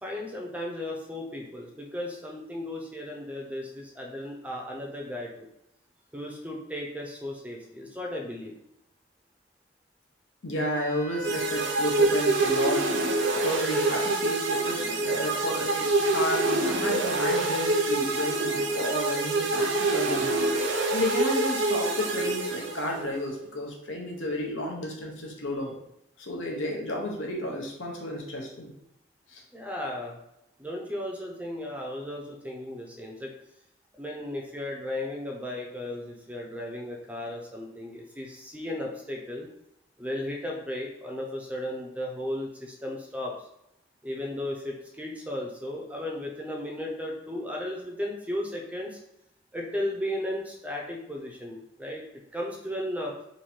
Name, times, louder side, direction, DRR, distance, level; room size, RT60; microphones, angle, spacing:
voice 1, 0.0-5.5 6.1-8.5 29.5-30.2 30.6-33.3 34.0-39.5 40.0-43.5 44.0-49.0 49.5-52.0 52.3-53.1, left 1 dB, 5° right, -1 dB, 0.5 m, -35 dB
voice 2, 10.4-12.9 13.4-20.3 20.9-25.8 26.2-28.7 29.3-29.4, left 1 dB, 85° left, 0 dB, 0.9 m, -32 dB
Wind instrument woodwind instrument, 10.6-14.1, right 3 dB, 40° left, 1.1 m, -43 dB
sound 1, 11.2-23.1, right 2 dB, 75° right, 0.6 m, -26 dB
3.1 x 2.7 x 4.2 m, 0.83 s
head